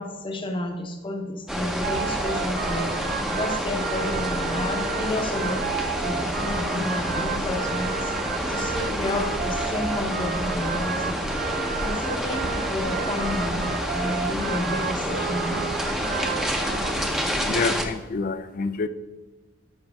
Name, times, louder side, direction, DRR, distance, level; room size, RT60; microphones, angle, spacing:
voice 1, 0.0-3.0 3.3-5.7 6.0-8.1 8.5-11.2 11.8-15.6, left 1 dB, 25° left, 4 dB, 0.9 m, -31 dB
sound 1, 1.5-17.8, equal, ahead, 0.8 m, -28 dB
sound 2, 1.8-16.9, right 8 dB, 50° right, 0.3 m, -32 dB
voice 2, 17.5-18.9, left 4 dB, 50° left, 13 dB, 0.5 m, -27 dB
12.5 x 5.8 x 3.5 m, 1.2 s
head